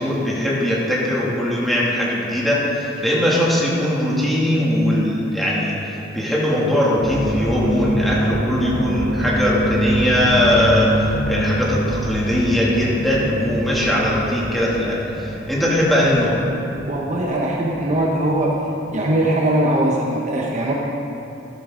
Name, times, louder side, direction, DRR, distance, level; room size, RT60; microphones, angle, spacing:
voice 1, 0.0-5.8 6.1-10.9 11.3-16.4, equal, ahead, -7 dB, 2.5 m, -20 dB
sound 1, 7.0-19.1 19.3-19.8, equal, 75° right, 2.4 m, -25 dB
voice 2, 16.9-18.5 18.9-20.7, right 1 dB, 40° right, -2 dB, 1.0 m, -20 dB
13.5 x 12.5 x 3.9 m, 2.9 s
head